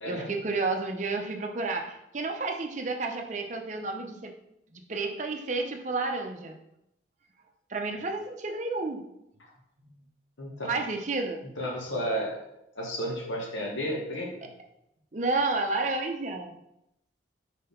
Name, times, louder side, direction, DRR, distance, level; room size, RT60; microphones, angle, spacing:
voice 1, 0.1-4.3 4.7-6.6 7.7-9.0 9.8-10.1 10.7-11.4 15.1-16.6, right 3 dB, 40° right, 3 dB, 0.7 m, -31 dB
voice 2, 10.4-10.8 11.6-12.4 12.7-14.5, equal, 85° left, -2 dB, 1.2 m, -32 dB
4.6 x 3.9 x 5.3 m, 0.83 s
head